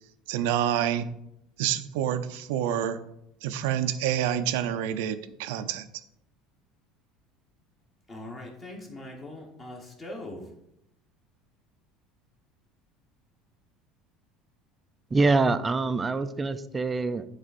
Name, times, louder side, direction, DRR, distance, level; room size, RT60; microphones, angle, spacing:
voice 1, 0.3-1.1 1.6-3.0 3.4-5.9, right 10 dB, 90° right, 11 dB, 0.6 m, -28 dB
voice 2, 8.1-10.4, left 1 dB, 25° left, 0 dB, 1.2 m, -41 dB
voice 3, 15.1-17.3, right 3 dB, 15° right, 11 dB, 0.4 m, -25 dB
10.5 x 3.5 x 4.1 m, 0.80 s
cardioid pair, 150°, 0 cm